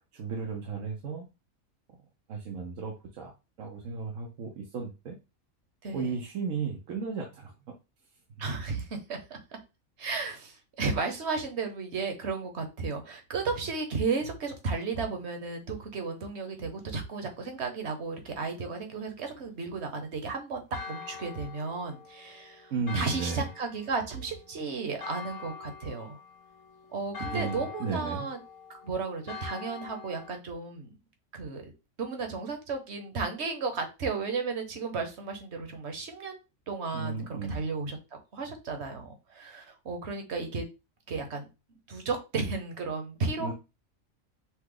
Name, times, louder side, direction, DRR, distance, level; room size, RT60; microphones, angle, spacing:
voice 1, 0.1-1.3 2.3-3.3 3.6-5.2 5.9-7.5 22.7-23.5 27.2-28.3 36.9-37.6 43.4-43.5, right 5 dB, 75° right, 1 dB, 1.2 m, -34 dB
voice 2, 5.8-6.1 8.4-9.4 10.0-20.6 20.9-26.2 26.9-28.4 28.7-31.0 31.3-31.7 32.0-36.4 36.7-38.0 38.3-40.7 41.1-41.5 41.9-43.5, right 4 dB, 55° right, 5 dB, 1.3 m, -34 dB
Church bell, 20.7-30.4, left 5 dB, 55° left, 1.0 m, -44 dB
5.8 x 2.2 x 3.9 m, 0.27 s
omnidirectional pair, 1.4 m